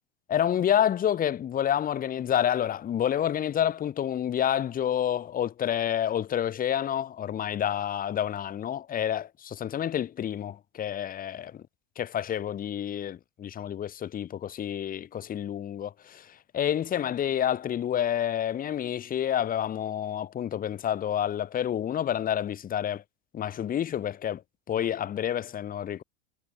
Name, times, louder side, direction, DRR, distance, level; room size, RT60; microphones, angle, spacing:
voice 1, 0.3-11.6 12.0-23.0 23.3-24.4 24.7-26.0, left 10 dB, 25° left, 1.3 m, -29 dB
supercardioid pair, 135°, 37 cm